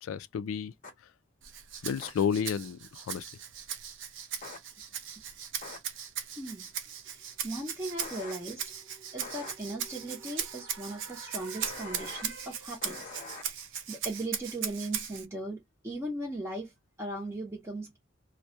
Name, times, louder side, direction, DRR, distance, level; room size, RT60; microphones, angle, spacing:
voice 1, 0.0-0.7 1.8-3.2, left 7 dB, 90° left, 0.3 m, -31 dB
sound 1, 0.8-0.9 2.0-2.1 4.4-4.6 5.6-5.8 8.0-8.3 9.2-9.5 11.6-12.2 12.8-13.4, left 3 dB, 40° left, 0.7 m, -43 dB
Rattle (instrument), 1.4-15.3, right 8 dB, 65° right, 0.5 m, -39 dB
voice 2, 6.4-6.7 7.0-8.6 9.1-13.0 13.9-16.7 17.0-18.0, right 1 dB, 15° right, 0.7 m, -38 dB
sound 2, 6.8-12.9, right 4 dB, 80° right, 0.9 m, -52 dB
2.3 x 2.1 x 2.7 m
head